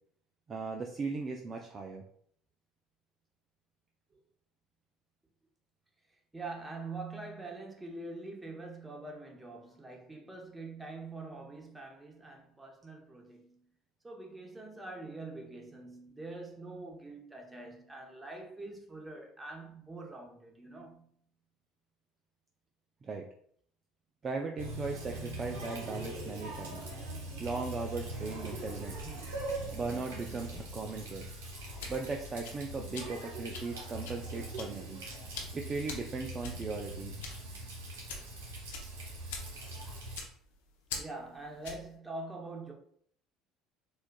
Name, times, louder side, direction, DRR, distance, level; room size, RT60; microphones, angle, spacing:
voice 1, 0.5-2.0 23.0-23.3 24.2-26.9 27.4-29.2 29.7-31.3 31.9-35.0 35.5-37.2, right 4 dB, 35° right, 0.4 m, -38 dB
voice 2, 6.3-13.7 14.0-21.1 41.0-42.7, right 2 dB, 15° right, 0.9 m, -44 dB
Water tap faucet, 24.6-40.2, right 1 dB, 80° right, 1.1 m, -42 dB
Human voice, 28.0-30.0 30.9-32.6, right 3 dB, 65° right, 0.8 m, -57 dB
sound 1, 31.6-41.9, left 4 dB, 80° left, 0.6 m, -46 dB
4.3 x 2.3 x 2.3 m
hypercardioid pair, 70°, 0 cm